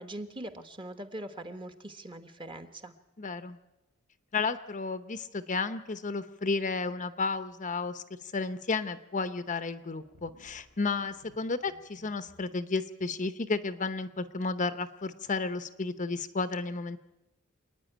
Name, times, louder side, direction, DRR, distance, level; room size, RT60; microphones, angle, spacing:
voice 1, 0.0-2.9, right 1 dB, 20° right, 8 dB, 1.2 m, -42 dB
voice 2, 3.2-3.6 4.3-17.0, left 4 dB, 35° left, 11 dB, 0.8 m, -32 dB
sound 1, 10.0-12.4, right 1 dB, 90° right, 3.2 m, -59 dB
27.0 x 9.8 x 10.0 m, 0.97 s
head